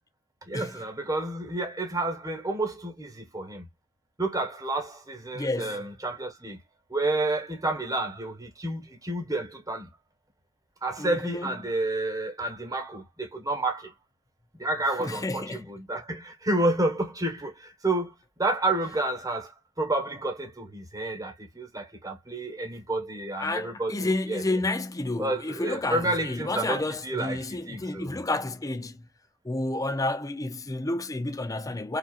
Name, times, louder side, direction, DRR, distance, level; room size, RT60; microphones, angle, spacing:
voice 1, 0.5-3.7 4.2-6.6 6.9-9.9 10.8-13.9 14.5-18.1 18.4-19.5 19.8-24.7 25.2-28.2, right 2 dB, 15° right, 1.2 m, -30 dB
voice 2, 5.3-5.8 11.0-11.5 15.0-15.7 23.4-29.0 29.4-32.0, left 2 dB, 15° left, 0.5 m, -30 dB
5.0 x 2.7 x 2.4 m
head